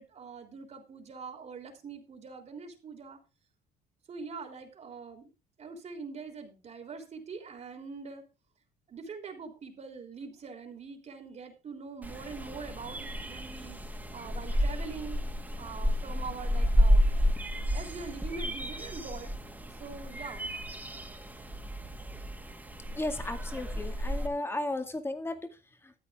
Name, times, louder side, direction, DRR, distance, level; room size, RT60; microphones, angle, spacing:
voice 1, 0.0-3.2 4.1-5.3 5.6-8.3 8.9-13.8 14.1-15.2 15.6-19.3 19.8-20.5, right 4 dB, 40° right, 5 dB, 3.4 m, -43 dB
sound 1, 12.0-24.3, equal, 10° right, 2.4 m, -31 dB
voice 2, 22.9-25.9, left 2 dB, 15° left, 7 dB, 2.1 m, -35 dB
14.0 x 8.5 x 3.6 m, 0.29 s
cardioid pair, 110°, 17 cm